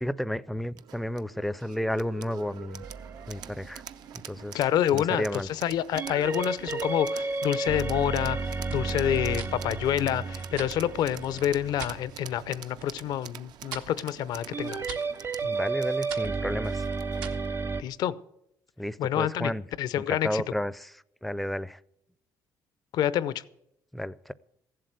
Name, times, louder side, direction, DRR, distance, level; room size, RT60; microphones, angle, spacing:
voice 1, 0.0-2.8 3.3-3.8 4.2-4.6 4.9-5.5 15.4-16.8 18.8-19.6 19.9-20.9 21.2-21.8 23.9-24.3, left 1 dB, ahead, 18 dB, 0.5 m, -32 dB
sound 1, 0.8-17.3, right 10 dB, 70° right, 0.6 m, -46 dB
sound 2, 2.8-4.1 6.0-12.4 14.5-17.8, right 4 dB, 35° right, 0.7 m, -32 dB
voice 2, 4.5-15.0 17.8-18.1 19.0-19.5 19.8-20.4 22.9-23.4, left 11 dB, 75° left, 17 dB, 0.6 m, -28 dB
sound 3, 8.7-12.0 12.4-13.0 13.3-17.5, right 7 dB, 90° right, 1.3 m, -44 dB
15.0 x 7.7 x 8.0 m, 0.80 s
cardioid pair, 90°, 7 cm